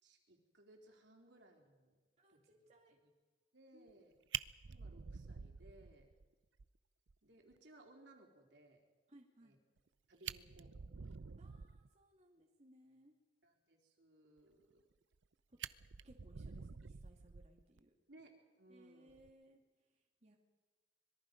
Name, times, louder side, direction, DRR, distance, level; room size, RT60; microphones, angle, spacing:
voice 1, 0.0-1.9 2.3-2.5 2.9-3.1 3.5-4.1 4.7-6.1 7.2-8.8 9.4-9.6 10.1-10.8 13.4-14.8 18.1-19.2, right 1 dB, 70° right, 2 dB, 3.8 m, -63 dB
voice 2, 2.2-3.0 3.7-4.0 9.1-9.6 11.4-13.1 16.0-17.9 18.7-19.6 20.2-20.4, right 1 dB, 40° right, 0 dB, 2.4 m, -65 dB
Fire, 3.9-4.0 4.3-6.2 6.6-6.7 7.1-7.2 7.5-7.6 9.8-9.9 10.1-11.9 14.7-15.2 15.6-17.8 19.1-19.3, right 7 dB, 90° right, 0.6 m, -48 dB
25.5 x 22.5 x 5.2 m, 1.3 s
head